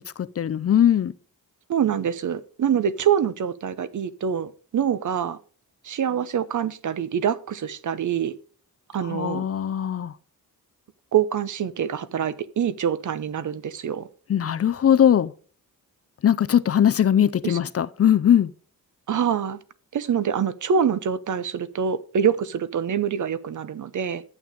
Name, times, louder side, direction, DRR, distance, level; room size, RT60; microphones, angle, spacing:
voice 1, 0.2-1.1 9.1-10.1 14.3-15.3 16.2-18.5, left 9 dB, 40° left, 0.5 m, -20 dB
voice 2, 1.7-5.4 5.8-8.3 8.9-9.4 11.1-14.1 17.4-17.6 19.1-19.6 19.9-24.2, right 8 dB, 55° right, 0.9 m, -25 dB
12.0 x 8.7 x 5.2 m
wide cardioid pair, 170°, 37 cm